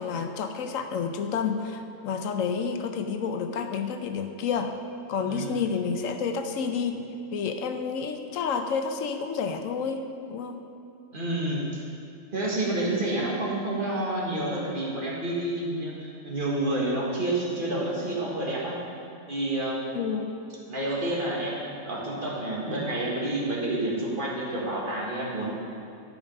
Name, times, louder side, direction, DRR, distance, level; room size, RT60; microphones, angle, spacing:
voice 1, 0.0-4.8 5.1-7.0 7.3-10.6 19.9-20.3, left 6 dB, 90° left, 6 dB, 1.1 m, -30 dB
voice 2, 5.2-5.6 11.1-11.8 12.3-18.8 19.3-19.9 20.7-25.5, right 1 dB, 40° right, -4 dB, 1.8 m, -29 dB
12.0 x 5.1 x 5.4 m, 2.7 s
omnidirectional pair, 1.3 m